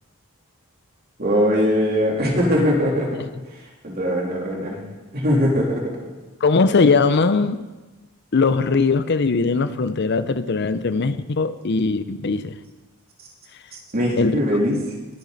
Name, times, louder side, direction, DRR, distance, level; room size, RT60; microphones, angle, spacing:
voice 1, 1.2-3.2 3.8-4.8 5.1-5.8 13.9-14.8, equal, 45° right, -2 dB, 3.3 m, -20 dB
voice 2, 6.4-7.6 8.3-12.5 14.2-14.4, left 4 dB, 50° left, 12 dB, 0.6 m, -20 dB
21.5 x 9.3 x 4.1 m, 1.2 s
head